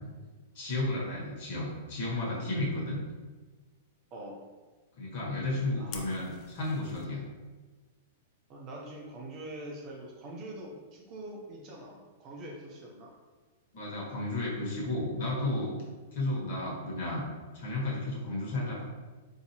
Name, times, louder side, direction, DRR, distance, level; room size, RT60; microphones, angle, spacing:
voice 1, 0.5-3.0 5.0-7.2 13.7-15.7 16.1-17.2 17.5-18.8, left 2 dB, 55° left, -4 dB, 1.5 m, -33 dB
voice 2, 5.8-6.2 8.5-13.1, right 1 dB, 30° right, -1 dB, 0.7 m, -44 dB
Fire, 5.9-7.0, left 6 dB, 30° left, 0.5 m, -46 dB
4.4 x 2.9 x 2.8 m, 1.3 s
hypercardioid pair, 155°, 0 cm